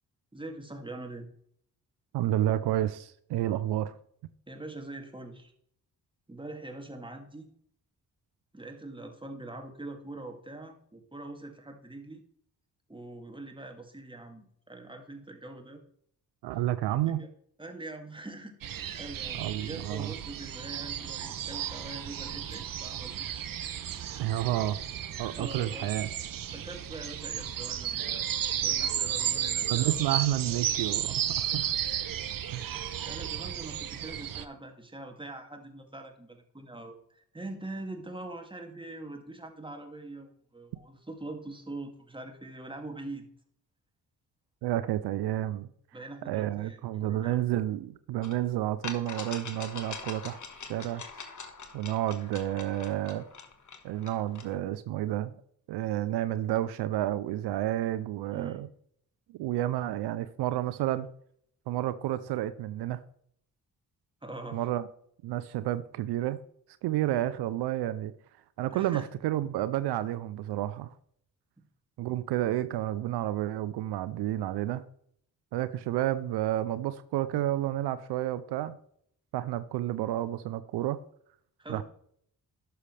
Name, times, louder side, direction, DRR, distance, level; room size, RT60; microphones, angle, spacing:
voice 1, 0.3-1.3 4.5-5.5 6.3-7.5 8.5-12.2 12.9-15.8 16.5-16.6 17.1-17.3 17.6-23.3 25.4-25.9 26.5-28.3 28.6-30.0 32.4-32.5 33.0-43.3 45.9-47.4 58.3-58.6 64.2-64.7 68.7-69.1 81.6-81.8, right 2 dB, 10° right, 2.3 m, -43 dB
voice 2, 2.1-3.9 16.4-17.2 19.4-20.1 24.2-24.8 25.2-26.1 29.7-31.7 32.5-32.6 44.6-45.7 46.3-50.4 50.7-51.0 51.7-53.2 53.8-55.3 55.7-58.7 59.3-61.1 61.7-63.0 64.5-64.9 65.2-66.4 66.8-68.1 68.6-70.9 72.0-74.8 75.5-78.8 79.3-81.0 81.7-81.8, right 13 dB, 80° right, 0.6 m, -30 dB
sound 1, 18.6-34.5, right 10 dB, 55° right, 0.8 m, -33 dB
sound 2, 48.2-48.3 48.8-54.6, left 5 dB, 45° left, 1.7 m, -43 dB
11.0 x 7.0 x 3.3 m
supercardioid pair, 50°, 39 cm